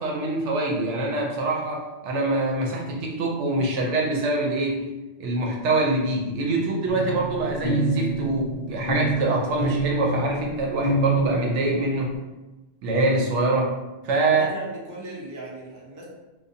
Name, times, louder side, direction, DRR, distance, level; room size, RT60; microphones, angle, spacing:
voice 1, 0.0-4.9 5.2-12.2 12.8-13.7 14.0-14.5, right 2 dB, 75° right, 0 dB, 0.9 m, -24 dB
sound 1, 6.9-12.1, right 2 dB, 55° left, 0.4 m, -27 dB
voice 2, 14.4-16.1, right 2 dB, 30° right, -5 dB, 0.3 m, -38 dB
2.6 x 2.2 x 2.6 m, 1.1 s
omnidirectional pair, 1.3 m